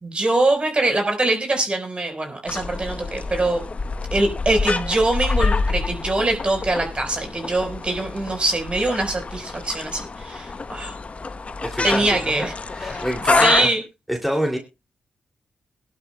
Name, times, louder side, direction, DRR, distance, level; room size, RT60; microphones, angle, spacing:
voice 1, 0.0-3.6 4.1-11.0 11.8-12.5 12.8-13.1 13.4-13.8, right 2 dB, 35° right, 4 dB, 4.4 m, -23 dB
sound 1, 2.5-13.7, left 4 dB, 40° left, 0.9 m, -27 dB
voice 2, 11.6-12.5 12.7-13.7 14.1-14.6, equal, ahead, 1 dB, 2.6 m, -26 dB
22.0 x 11.5 x 2.2 m, 0.26 s
cardioid pair, 55°, 3 cm